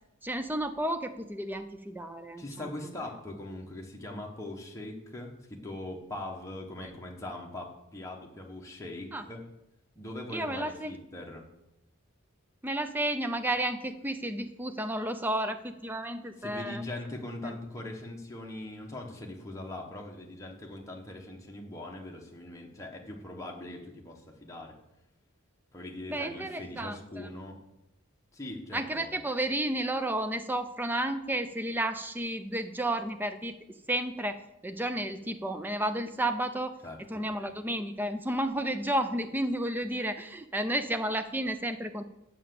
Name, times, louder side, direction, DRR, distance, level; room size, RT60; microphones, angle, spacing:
voice 1, 0.2-2.7 6.8-6.9 9.1-9.2 10.3-10.9 12.6-16.8 17.4-17.6 26.1-27.3 28.7-33.6 33.9-36.8 37.1-42.0, right 1 dB, 10° right, 9 dB, 0.4 m, -32 dB
voice 2, 2.4-9.4 9.9-11.5 16.4-24.8 25.7-27.6 28.3-29.2 36.8-37.3, left 1 dB, 15° left, -1 dB, 1.1 m, -41 dB
7.4 x 5.7 x 7.6 m, 0.91 s
head